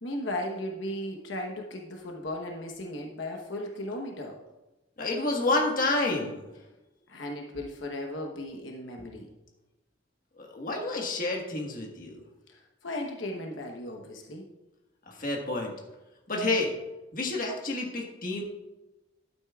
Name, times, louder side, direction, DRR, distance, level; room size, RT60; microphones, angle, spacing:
voice 1, 0.0-4.4 7.1-9.3 12.5-14.4, left 1 dB, 85° left, 1 dB, 1.1 m, -36 dB
voice 2, 5.0-6.5 9.0-9.1 10.4-12.2 15.1-15.7 16.3-16.7 17.1-18.4, left 2 dB, 50° left, 0 dB, 1.5 m, -29 dB
11.5 x 9.2 x 2.4 m, 1.0 s
head